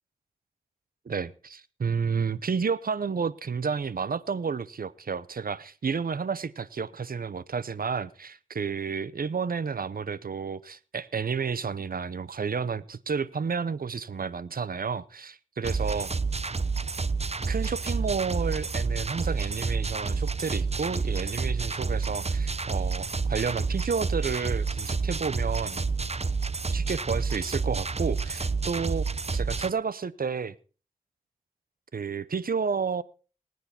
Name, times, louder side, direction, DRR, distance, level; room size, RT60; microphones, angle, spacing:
voice 1, 1.1-16.1 17.5-25.8 26.7-29.1 29.3-30.5 31.9-33.0, right 5 dB, 80° right, 0.7 m, -31 dB
sound 1, 15.6-29.7, right 4 dB, 45° right, 0.8 m, -29 dB
19.5 x 9.5 x 4.3 m
cardioid pair, 45°, 15 cm